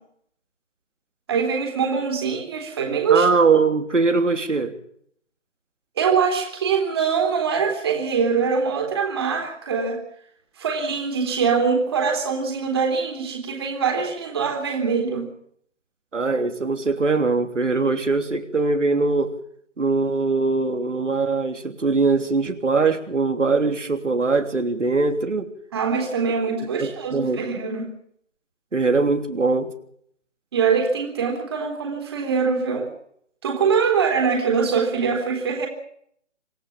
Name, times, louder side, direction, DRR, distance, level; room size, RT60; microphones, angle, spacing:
voice 1, 1.3-3.3 6.0-10.0 10.6-15.3 25.7-27.9 30.5-32.9 33.4-35.7, right 5 dB, 20° right, 1 dB, 3.6 m, -23 dB
voice 2, 3.1-4.7 16.1-19.4 19.8-25.5 26.8-27.4 28.7-29.7, right 4 dB, 75° right, 6 dB, 3.3 m, -21 dB
26.5 x 15.5 x 7.3 m, 0.66 s
figure-of-eight pair, 170°, 37 cm